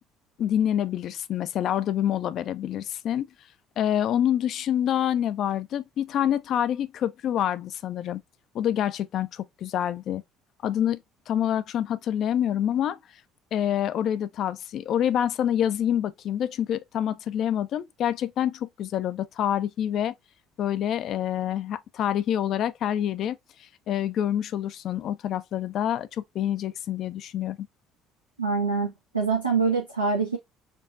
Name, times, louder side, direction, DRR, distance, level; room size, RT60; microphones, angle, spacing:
voice 1, 0.4-3.3 3.8-8.2 8.5-10.2 10.6-13.0 13.5-20.1 20.6-27.6, left 10 dB, 50° left, 0.3 m, -27 dB
voice 2, 28.4-30.4, right 4 dB, 90° right, 0.6 m, -25 dB
4.5 x 2.4 x 2.4 m
figure-of-eight pair, 55°, 0 cm